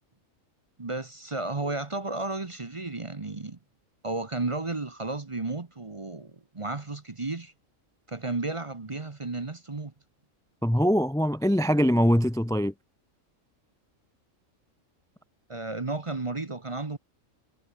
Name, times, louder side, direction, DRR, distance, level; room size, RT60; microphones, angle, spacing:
voice 1, 0.8-3.6 4.0-7.5 8.1-9.9 15.5-17.0, right 3 dB, 25° right, 1.0 m, -33 dB
voice 2, 10.6-12.7, equal, 5° left, 0.7 m, -23 dB
omnidirectional pair, 1.4 m